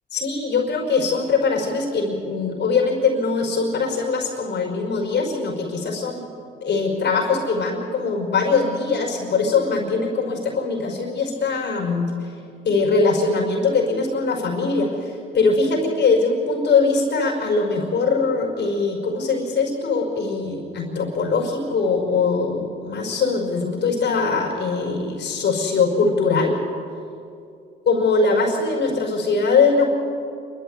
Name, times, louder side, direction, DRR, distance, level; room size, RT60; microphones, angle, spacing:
voice 1, 0.1-6.2 6.6-12.0 12.6-26.6 27.9-29.9, left 4 dB, 60° left, 1 dB, 5.5 m, -21 dB
27.5 x 13.0 x 9.4 m, 2.5 s
cardioid pair, 90°, 20 cm